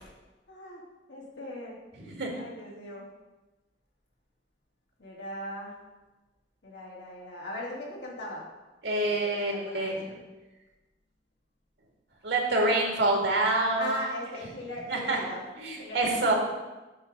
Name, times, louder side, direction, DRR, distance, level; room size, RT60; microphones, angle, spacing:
voice 1, 0.5-0.8 1.1-1.8 2.4-3.1 5.0-5.8 6.6-8.4 9.0-10.2 13.8-15.4 15.8-16.2, left 1 dB, 90° left, -4 dB, 2.5 m, -39 dB
voice 2, 8.8-10.0 12.2-13.9 14.9-15.2 15.6-16.3, right 2 dB, 85° right, -1 dB, 2.0 m, -26 dB
8.6 x 4.0 x 6.6 m, 1.1 s
head